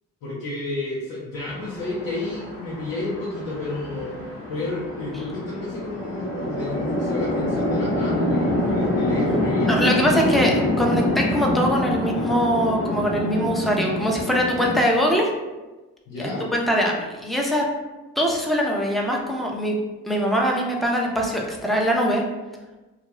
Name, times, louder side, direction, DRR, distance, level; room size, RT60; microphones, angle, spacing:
voice 1, 0.2-4.2 4.5-10.6 16.1-16.5, left 2 dB, 85° left, -7 dB, 0.7 m, -31 dB
Chatter / Traffic noise roadway noise / Train, 1.4-14.8, left 1 dB, 40° left, 0.8 m, -26 dB
voice 2, 9.7-15.3 16.2-17.6 18.2-19.7 20.1-22.2, equal, ahead, -1 dB, 0.6 m, -22 dB
2.5 x 2.3 x 3.0 m, 1.1 s
supercardioid pair, 50°, 37 cm